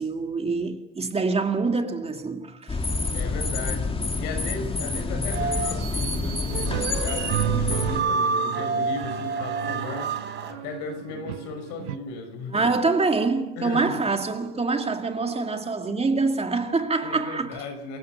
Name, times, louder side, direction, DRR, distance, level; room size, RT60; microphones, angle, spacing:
voice 1, 0.0-2.8 12.5-17.6, right 3 dB, 20° right, 2.1 m, -25 dB
sound 1, 2.7-8.0, left 3 dB, 20° left, 2.2 m, -28 dB
voice 2, 3.1-3.9 4.2-10.2 10.5-12.7 13.6-14.0 17.0-18.0, left 4 dB, 70° left, 5.6 m, -36 dB
sound 2, 5.3-10.5, right 4 dB, 40° right, 3.4 m, -29 dB
sound 3, 6.5-12.0, right 13 dB, 80° right, 1.0 m, -32 dB
27.5 x 16.0 x 6.6 m
supercardioid pair, 90°, 29 cm